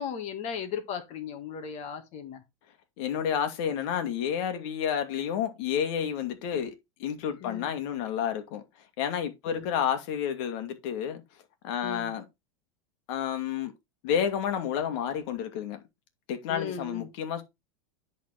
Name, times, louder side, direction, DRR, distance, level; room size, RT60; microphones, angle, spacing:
voice 1, 0.0-2.4 7.4-7.7 9.5-9.6 11.8-12.1 16.5-17.1, left 7 dB, 45° left, 1.8 m, -36 dB
voice 2, 3.0-6.7 7.0-8.6 9.0-11.2 11.6-12.3 13.1-13.7 14.0-15.8 16.3-17.4, left 8 dB, 60° left, 2.2 m, -30 dB
10.5 x 4.3 x 4.3 m
supercardioid pair, 125°, 17 cm